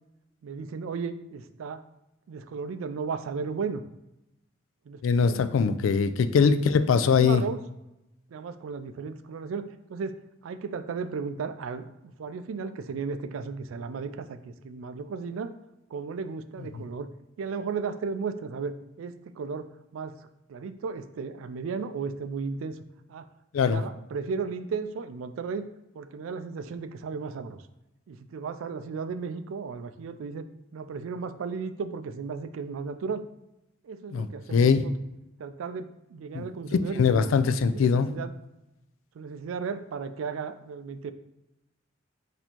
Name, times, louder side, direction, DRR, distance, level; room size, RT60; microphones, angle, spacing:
voice 1, 0.4-1.8 2.3-3.8 4.9-5.4 6.4-6.5 7.1-7.6 8.3-10.2 10.4-15.5 15.9-17.1 17.4-20.2 20.5-22.8 23.1-23.3 23.6-25.7 25.9-27.6 28.1-30.5 30.7-33.2 33.8-34.9 35.4-37.3 37.7-38.3 39.1-41.1, right 5 dB, 85° right, 11 dB, 0.3 m, -35 dB
voice 2, 5.0-7.4 23.5-23.8 34.1-34.8 36.3-36.4 37.0-38.1, left 6 dB, 80° left, 11 dB, 0.3 m, -22 dB
4.2 x 2.7 x 4.3 m, 0.92 s
head